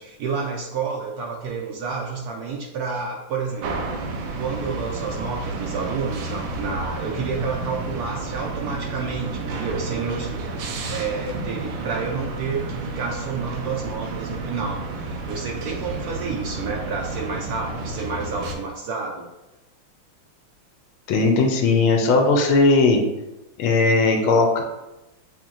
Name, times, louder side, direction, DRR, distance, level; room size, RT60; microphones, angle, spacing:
voice 1, 0.0-10.4 10.9-19.3, right 5 dB, 90° right, -1 dB, 0.8 m, -30 dB
sound 1, 3.6-18.5, right 3 dB, 70° right, 1.3 m, -31 dB
voice 2, 21.1-23.0 23.6-24.6, left 3 dB, 85° left, 3 dB, 1.4 m, -18 dB
7.2 x 2.8 x 2.5 m, 0.98 s
omnidirectional pair, 2.3 m